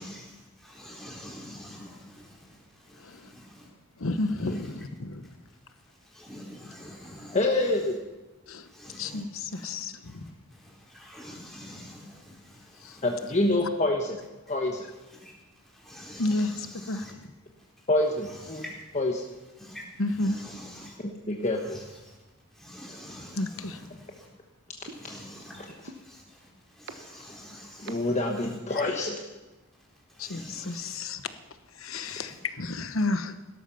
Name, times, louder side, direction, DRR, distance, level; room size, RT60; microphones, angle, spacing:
voice 1, 0.0-2.5 2.9-3.7 4.2-4.9 6.1-7.9 8.7-9.2 9.5-9.7 10.0-10.2 10.5-13.4 15.1-15.3 15.7-17.1 18.2-18.7 19.6-21.0 21.5-22.1 22.6-24.3 24.9-25.7 26.0-26.5 26.8-28.8 30.1-31.0 32.0-32.4, left 1 dB, ahead, -4 dB, 4.3 m, -46 dB
voice 2, 3.0-3.3 4.0-5.3 8.5-8.7 8.9-10.2 12.8-13.0 16.2-16.5 16.9-17.2 20.0-20.4 23.4-23.8 30.2-31.2 31.7-33.3, left 2 dB, 75° left, 10 dB, 1.1 m, -31 dB
voice 3, 7.3-8.0 13.0-14.2 14.5-14.9 17.9-18.6 18.9-19.3 21.3-21.8 27.8-29.2, left 2 dB, 35° left, 2 dB, 1.1 m, -26 dB
sound 1, 24.9-25.0 25.9-26.0 26.9-27.0 27.9-28.0 28.9-29.0, right 3 dB, 60° right, 1.3 m, -40 dB
17.0 x 13.0 x 5.7 m, 1.1 s
head